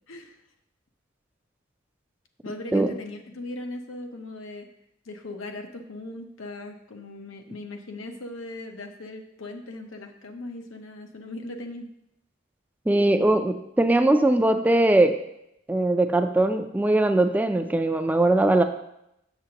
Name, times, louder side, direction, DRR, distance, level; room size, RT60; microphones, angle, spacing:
voice 1, 0.1-0.4 2.4-4.7 5.0-11.9, left 2 dB, 90° left, 4 dB, 0.8 m, -38 dB
voice 2, 12.9-15.1 15.7-18.6, right 2 dB, 10° right, 7 dB, 0.3 m, -20 dB
6.9 x 6.7 x 2.8 m, 0.81 s
head